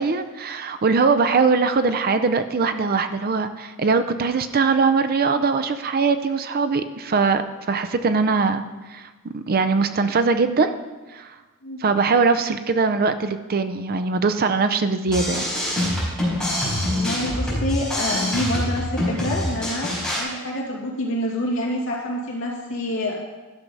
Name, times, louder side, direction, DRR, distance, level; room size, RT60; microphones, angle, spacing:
voice 1, 0.0-8.6 8.9-10.8 11.1-11.3 11.8-15.4, right 4 dB, 45° right, 9 dB, 0.5 m, -21 dB
sound 1, 15.1-20.2, left 1 dB, 5° left, 4.0 m, -25 dB
voice 2, 16.9-23.2, left 1 dB, 65° left, -3 dB, 2.6 m, -27 dB
12.5 x 6.1 x 5.4 m, 1.2 s
head